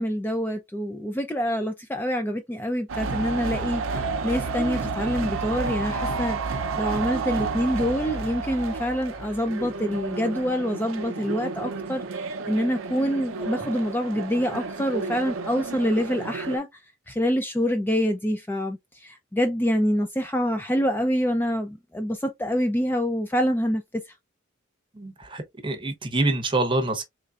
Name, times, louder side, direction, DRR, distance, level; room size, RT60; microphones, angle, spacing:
voice 1, 0.0-6.4 6.8-12.0 12.5-16.7 17.1-23.8, equal, 10° left, 0.4 m, -26 dB
sound 1, 2.9-16.6, right 4 dB, 70° right, 0.5 m, -31 dB
voice 2, 24.9-27.0, right 2 dB, 25° right, 0.8 m, -26 dB
3.8 x 3.2 x 2.3 m
head